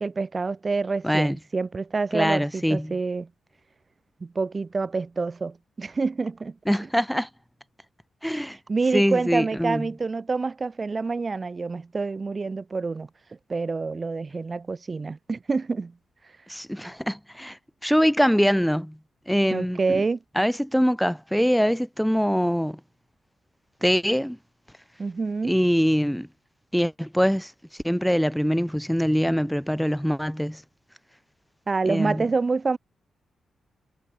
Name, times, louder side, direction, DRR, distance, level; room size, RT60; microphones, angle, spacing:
voice 1, 0.0-3.3 4.2-6.6 8.7-13.1 13.5-15.9 19.5-20.2 25.0-25.5 31.7-32.8, right 4 dB, 25° right, 0.9 m, -27 dB
voice 2, 1.0-1.4 2.1-3.0 6.7-7.3 8.2-8.6 8.9-9.9 16.5-19.0 19.3-20.0 20.4-22.8 23.8-24.4 25.4-26.3 26.7-27.5 27.8-30.6 31.9-32.3, equal, ahead, 2.0 m, -23 dB
wide cardioid pair, 165°, 0 cm